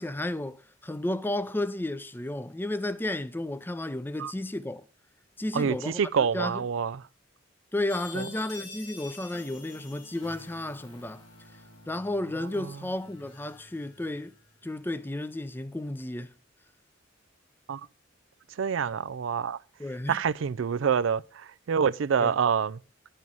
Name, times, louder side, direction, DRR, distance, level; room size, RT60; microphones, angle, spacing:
voice 1, 0.0-4.8 5.4-6.0 6.3-6.6 7.7-11.2 11.9-14.3 14.6-16.3 19.8-20.2 22.2-22.3, left 1 dB, 10° left, 0.5 m, -32 dB
voice 2, 5.5-7.0 8.1-8.3 12.6-12.8 17.7-17.8 18.6-19.6 20.1-22.8, right 6 dB, 85° right, 0.4 m, -27 dB
sound 1, 7.9-14.6, left 2 dB, 75° left, 2.6 m, -48 dB
11.0 x 5.6 x 6.1 m
head